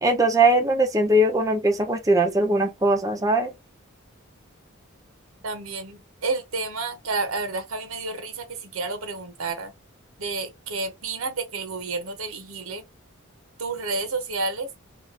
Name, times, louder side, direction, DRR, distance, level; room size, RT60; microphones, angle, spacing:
voice 1, 0.0-3.5, right 1 dB, 15° right, 0.6 m, -20 dB
voice 2, 5.4-9.7 10.2-12.8 13.6-14.7, right 3 dB, 85° right, 0.9 m, -30 dB
3.1 x 2.4 x 3.7 m
head